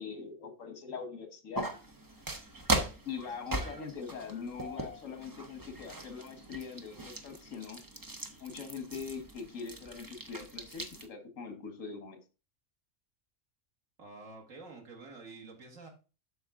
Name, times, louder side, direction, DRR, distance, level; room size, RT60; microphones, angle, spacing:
voice 1, 0.0-1.7 3.1-7.8 8.4-12.2, left 5 dB, 75° left, 6 dB, 1.7 m, -42 dB
sound 1, 1.5-11.1, right 2 dB, 20° right, 0.7 m, -39 dB
voice 2, 14.0-15.9, right 3 dB, 90° right, 1 dB, 2.4 m, -49 dB
7.9 x 6.4 x 3.7 m, 0.32 s
omnidirectional pair, 1.3 m